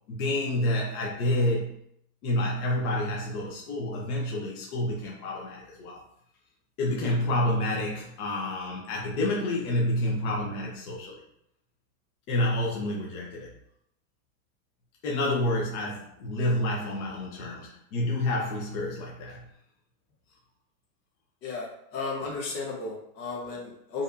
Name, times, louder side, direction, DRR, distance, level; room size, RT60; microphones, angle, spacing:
voice 1, 0.1-1.8 2.2-6.0 6.8-11.2 12.3-13.5 15.0-19.5, left 1 dB, 60° left, -3 dB, 1.1 m, -29 dB
voice 2, 21.4-24.0, left 3 dB, 85° left, -1 dB, 1.5 m, -34 dB
4.5 x 3.5 x 2.7 m, 0.73 s
supercardioid pair, 170°, 49 cm